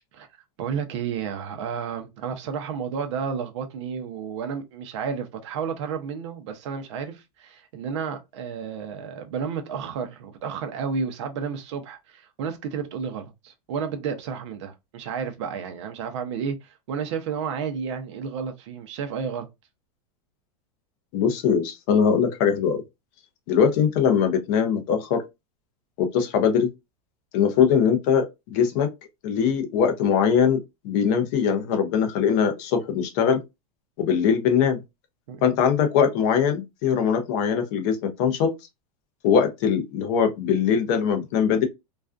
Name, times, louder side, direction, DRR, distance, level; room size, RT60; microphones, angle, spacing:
voice 1, 0.6-19.5 35.3-35.4, right 6 dB, 45° right, 0.5 m, -31 dB
voice 2, 21.1-22.8 23.5-25.2 26.0-26.7 27.3-28.9 29.2-30.6 30.8-33.4 34.0-34.8 35.4-38.5 39.2-41.7, left 7 dB, 30° left, 0.4 m, -21 dB
2.4 x 2.2 x 2.4 m
supercardioid pair, 175°, 20 cm